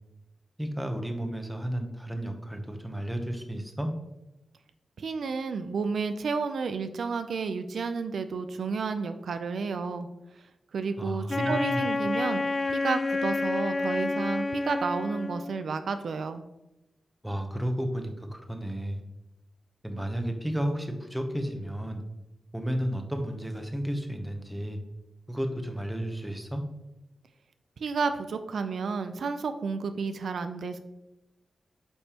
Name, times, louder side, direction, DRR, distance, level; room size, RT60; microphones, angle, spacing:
voice 1, 0.6-3.9 11.0-11.8 17.2-19.0 19.8-22.0 22.5-24.8 25.3-26.6, equal, 5° right, 5 dB, 0.9 m, -32 dB
voice 2, 5.0-10.1 10.7-12.4 12.7-16.4 27.8-30.8, right 4 dB, 70° right, 9 dB, 0.4 m, -31 dB
Wind instrument woodwind instrument, 11.3-15.7, left 3 dB, 25° left, 0.3 m, -29 dB
8.6 x 5.3 x 2.9 m, 0.94 s
wide cardioid pair, 150°, 0 cm